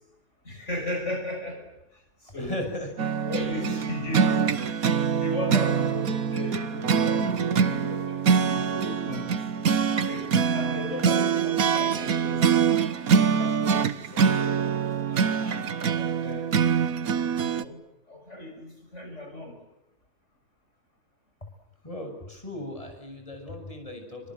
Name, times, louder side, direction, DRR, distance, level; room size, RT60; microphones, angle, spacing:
voice 1, 0.4-2.7 3.2-8.2 8.5-9.3 9.9-12.7 13.1-13.8 14.1-14.6 15.1-16.6 17.4-17.8 18.1-19.6, left 1 dB, 55° left, 5 dB, 6.5 m, -36 dB
voice 2, 2.4-2.9 21.8-24.3, left 1 dB, 25° left, 4 dB, 7.3 m, -36 dB
sound 1, 3.0-17.6, right 6 dB, 85° right, 1.7 m, -24 dB
30.0 x 26.5 x 7.6 m, 0.86 s
omnidirectional pair, 1.5 m